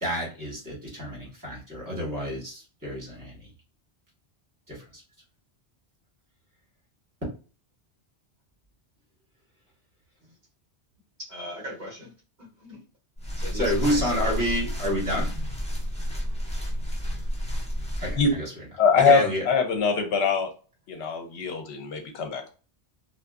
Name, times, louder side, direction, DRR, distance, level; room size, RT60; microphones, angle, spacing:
voice 1, 0.0-3.5 4.7-5.0 7.2-7.3 13.5-15.3 18.0-18.5 19.0-19.4, equal, 20° right, -5 dB, 1.2 m, -29 dB
voice 2, 11.3-12.1 12.4-12.8 13.4-14.6, equal, 45° right, -3 dB, 0.8 m, -39 dB
sound 1, 13.2-18.3, equal, 10° left, 0.5 m, -30 dB
voice 3, 18.8-20.5 20.9-22.5, left 5 dB, 75° left, 4 dB, 0.9 m, -23 dB
2.7 x 2.3 x 2.3 m, 0.36 s
omnidirectional pair, 1.1 m